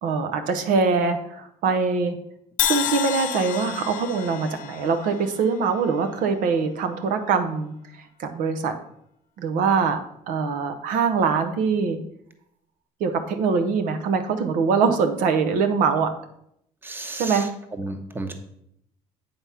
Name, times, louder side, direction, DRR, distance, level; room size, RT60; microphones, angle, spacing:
voice 1, 0.0-2.2 2.6-7.7 8.2-8.7 9.4-10.0 10.3-12.0 13.0-16.1 17.1-17.5, right 5 dB, 70° right, 8 dB, 0.9 m, -23 dB
Crash cymbal, 2.6-6.6, left 10 dB, 70° left, 0.8 m, -30 dB
voice 2, 16.8-17.4 17.8-18.3, right 2 dB, 15° right, 6 dB, 1.0 m, -32 dB
8.8 x 3.5 x 5.7 m, 0.74 s
cardioid pair, 110°, 14 cm